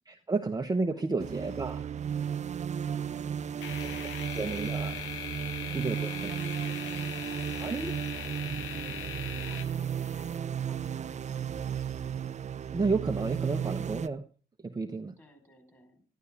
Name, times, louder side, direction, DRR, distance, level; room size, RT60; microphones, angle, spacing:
voice 1, 0.1-1.9 3.8-3.9 4.3-4.9 5.7-6.3 7.6-7.9 12.7-14.2 14.6-15.1, right 3 dB, 20° right, 5 dB, 0.9 m, -31 dB
sound 1, 1.2-14.1, right 8 dB, 35° right, 0.5 m, -34 dB
sound 2, 3.6-10.4, left 9 dB, 85° left, 1.1 m, -40 dB
voice 2, 9.2-12.1 15.2-16.0, equal, 10° left, 6 dB, 4.8 m, -57 dB
13.0 x 11.5 x 3.6 m, 0.36 s
cardioid pair, 90°, 20 cm